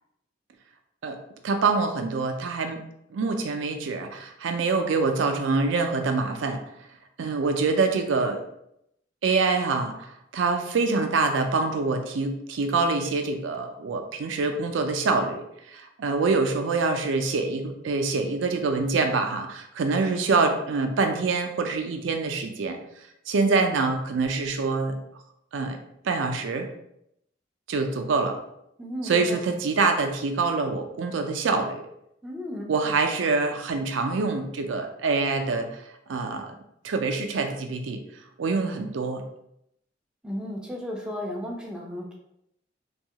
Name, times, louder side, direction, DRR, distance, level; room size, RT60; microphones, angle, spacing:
voice 1, 1.4-2.8 3.1-6.6 7.2-8.4 9.2-22.8 23.3-25.0 25.5-25.8 26.0-26.7 27.7-28.4 29.0-31.8 32.7-35.8 36.1-36.5 36.8-38.0 38.4-39.2, right 4 dB, 75° right, 5 dB, 0.4 m, -25 dB
voice 2, 28.8-29.4 32.2-32.9 40.2-42.1, left 1 dB, 5° right, -1 dB, 0.4 m, -34 dB
2.7 x 2.3 x 2.8 m, 0.78 s
head